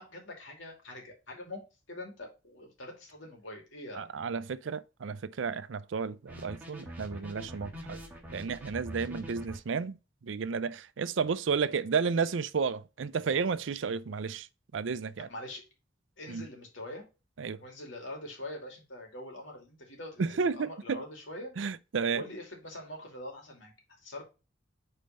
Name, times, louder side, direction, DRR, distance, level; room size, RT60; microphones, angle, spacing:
voice 1, 0.0-1.6 1.9-4.1 15.3-15.6 16.2-17.1 17.6-21.5 22.1-23.7 24.0-24.2, left 1 dB, 85° left, 2.7 m, -44 dB
voice 2, 3.9-8.0 8.3-10.0 10.2-14.5 14.7-15.3 16.3-16.5 17.4-17.6 20.2-21.0 21.6-22.2, right 5 dB, 80° right, 0.5 m, -32 dB
sound 1, 6.3-9.6, equal, 10° right, 1.6 m, -43 dB
5.4 x 4.4 x 5.1 m
head